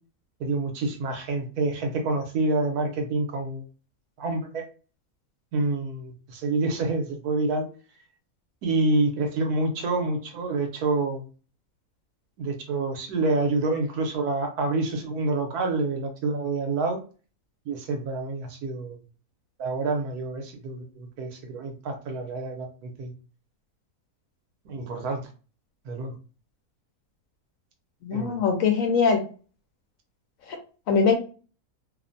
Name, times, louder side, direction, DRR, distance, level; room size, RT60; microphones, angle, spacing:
voice 1, 0.4-3.6 4.2-4.6 5.5-7.6 8.6-11.2 12.4-17.0 17.7-19.0 19.6-23.1 24.6-25.3 25.8-26.1 28.1-28.4, right 3 dB, 80° right, 4 dB, 1.2 m, -27 dB
voice 2, 28.0-29.2 30.5-30.6 30.9-31.2, left 5 dB, 70° left, 4 dB, 1.0 m, -22 dB
2.9 x 2.1 x 2.5 m, 0.36 s
omnidirectional pair, 1.6 m